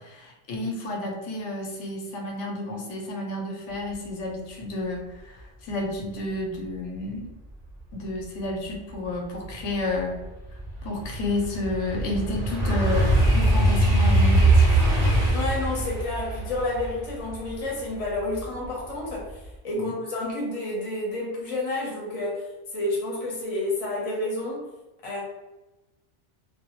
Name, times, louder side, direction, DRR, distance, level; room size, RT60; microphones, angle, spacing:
voice 1, 0.0-7.3 7.9-10.1 10.8-14.8 19.7-20.0, left 1 dB, 85° left, 0 dB, 0.9 m, -31 dB
sound 1, 9.0-9.1 9.6-18.7 19.1-19.5, right 1 dB, 50° right, 0.6 m, -22 dB
voice 2, 15.3-22.5 22.7-24.7 25.0-25.2, left 2 dB, 35° left, -3 dB, 0.6 m, -30 dB
2.2 x 2.0 x 2.9 m, 1.1 s
omnidirectional pair, 1.2 m